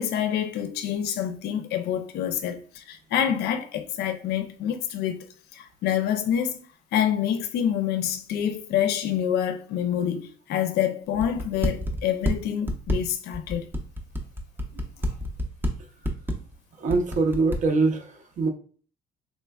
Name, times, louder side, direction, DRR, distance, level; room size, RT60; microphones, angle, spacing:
voice 1, 0.0-5.3 5.5-6.6 6.9-13.6, left 9 dB, 75° left, 0.5 m, -27 dB
sound 1, 11.1-12.3 12.7-15.7 16.0-16.5 16.9-17.6, equal, 10° right, 0.6 m, -27 dB
voice 2, 16.8-18.5, right 3 dB, 45° right, 0.7 m, -24 dB
3.2 x 3.1 x 2.3 m
cardioid pair, 110°, 17 cm